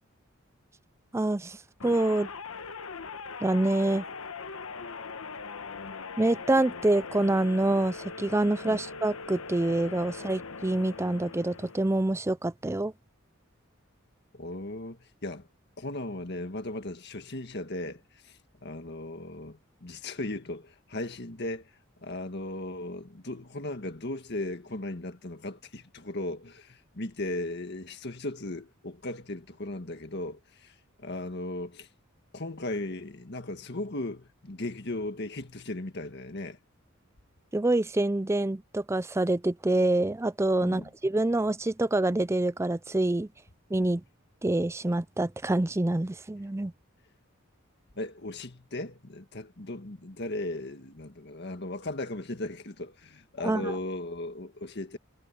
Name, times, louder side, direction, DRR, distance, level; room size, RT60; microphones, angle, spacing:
voice 1, 1.1-1.6 1.8-2.3 3.4-4.0 6.2-12.9 37.5-43.3 43.7-44.0 44.4-46.7 53.4-53.7, right 2 dB, 15° right, 0.4 m, -26 dB
sound 1, 1.8-12.2, left 4 dB, 85° left, 1.2 m, -41 dB
voice 2, 14.3-15.5 15.8-31.9 32.3-36.6 40.6-40.9 48.0-55.0, left 2 dB, 55° left, 1.7 m, -37 dB
head